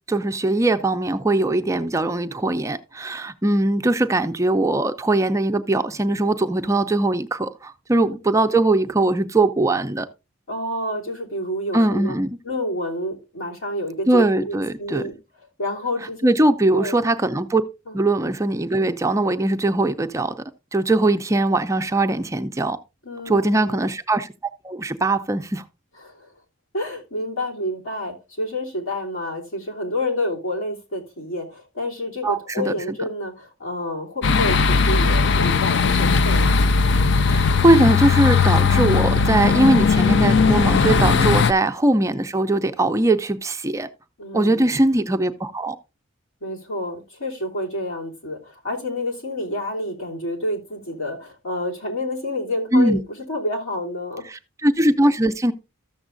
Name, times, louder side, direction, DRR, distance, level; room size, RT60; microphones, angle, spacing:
voice 1, 0.0-10.1 11.7-12.3 14.1-15.0 16.2-17.6 17.9-20.3 20.7-22.8 23.3-24.3 24.6-25.6 32.2-32.7 37.3-43.9 44.3-45.8 52.7-53.0 54.3-55.5, right 2 dB, 15° right, 0.4 m, -20 dB
voice 2, 10.5-12.1 12.4-15.1 15.6-16.2 16.7-17.0 17.9-18.0 23.0-23.8 26.0-26.3 26.7-36.7 41.1-41.4 44.2-44.8 46.4-54.3, left 1 dB, 90° left, 3.1 m, -29 dB
sound 1, 34.2-41.5, left 5 dB, 55° left, 0.4 m, -18 dB
13.5 x 7.1 x 2.5 m
head